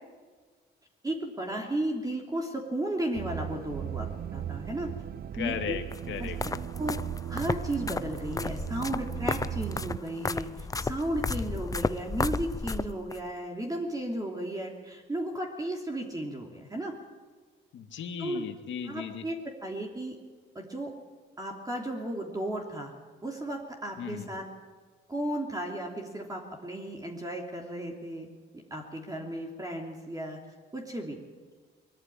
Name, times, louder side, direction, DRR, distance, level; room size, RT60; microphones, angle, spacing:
voice 1, 1.0-4.9 5.4-5.8 6.2-6.5 6.8-7.0 7.3-16.9 18.2-18.4 18.8-20.2 20.5-20.9 21.4-22.9 23.2-24.4 25.1-28.3 28.7-30.4 30.7-31.2, right 1 dB, 20° right, 0 dB, 3.1 m, -34 dB
sound 1, 3.1-10.0, right 10 dB, 50° right, 0.6 m, -37 dB
voice 2, 5.3-6.4 17.7-19.3 24.0-24.3, left 8 dB, 70° left, 6 dB, 2.2 m, -36 dB
sound 2, 5.9-13.2, left 3 dB, 15° left, 0.6 m, -33 dB
22.0 x 14.0 x 9.9 m, 1.5 s
cardioid pair, 90°, 20 cm